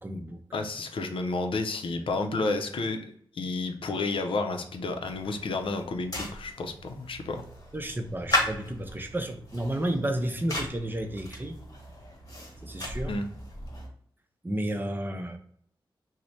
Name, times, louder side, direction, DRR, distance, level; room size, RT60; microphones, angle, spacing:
voice 1, 0.0-0.6 7.7-11.6 12.6-13.2 14.4-15.4, right 1 dB, 20° right, 5 dB, 0.6 m, -32 dB
voice 2, 0.5-7.4 13.1-13.3, left 3 dB, 80° left, 5 dB, 0.5 m, -31 dB
sound 1, 5.0-13.9, left 1 dB, 45° left, 1.3 m, -36 dB
3.1 x 2.1 x 4.0 m, 0.66 s
cardioid pair, 65°, 9 cm